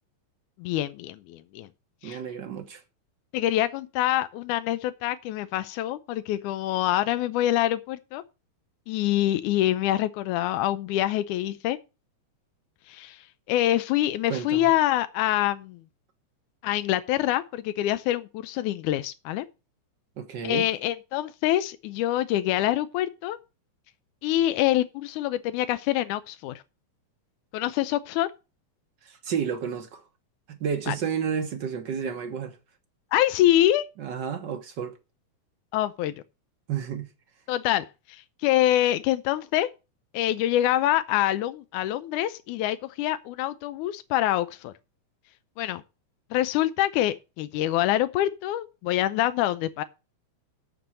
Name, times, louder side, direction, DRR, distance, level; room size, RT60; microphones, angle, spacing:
voice 1, 0.6-1.7 2.0-2.2 3.3-8.2 8.9-11.8 12.9-15.8 16.6-19.5 20.4-23.4 24.2-26.6 27.5-28.3 30.9-31.0 33.1-33.9 35.7-36.1 37.5-39.7 40.1-44.7 45.6-45.8 46.3-49.8, left 13 dB, 90° left, 2.1 m, -25 dB
voice 2, 2.0-2.8 14.3-14.7 20.2-20.7 29.0-30.0 30.5-32.6 34.0-35.0 36.7-37.1, right 7 dB, 60° right, 1.2 m, -31 dB
7.8 x 6.8 x 7.4 m
omnidirectional pair, 3.4 m